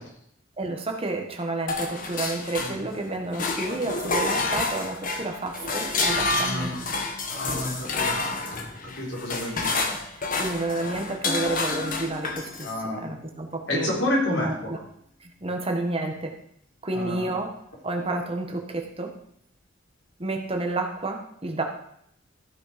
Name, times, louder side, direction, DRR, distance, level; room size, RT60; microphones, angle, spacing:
voice 1, 0.6-6.8 9.4-10.0 10.4-12.7 13.0-13.9 14.4-14.8 15.2-16.4 16.8-17.5 17.8-19.2 20.2-21.6, right 2 dB, 30° right, 3 dB, 1.4 m, -30 dB
sound 1, 1.7-3.0 3.3-12.8, left 3 dB, 45° left, 1.4 m, -29 dB
voice 2, 6.3-6.8 7.3-8.3 8.8-9.8 12.6-13.1 13.7-14.7 16.9-17.3, left 1 dB, 75° left, -2 dB, 4.0 m, -29 dB
14.0 x 6.4 x 5.1 m, 0.71 s
head